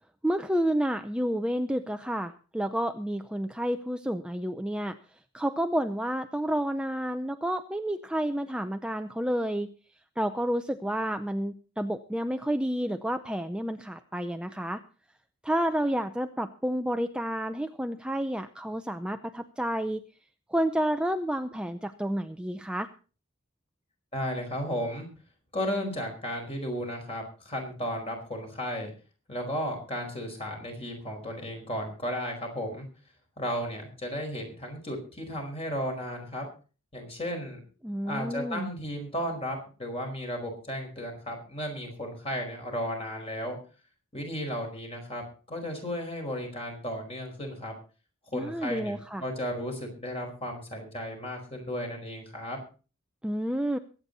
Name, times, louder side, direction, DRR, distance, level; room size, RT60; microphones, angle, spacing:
voice 1, 0.2-5.0 5.3-9.7 10.2-14.8 15.4-20.0 20.5-22.9 37.8-38.7 48.3-49.2 53.2-53.8, equal, 5° right, 7 dB, 0.6 m, -30 dB
voice 2, 24.1-25.1 25.5-28.9 29.3-32.9 33.4-36.5 36.9-37.6 38.0-43.6 44.1-47.7 48.3-52.6, equal, 30° left, 3 dB, 4.9 m, -34 dB
22.5 x 8.8 x 4.0 m, 0.36 s
head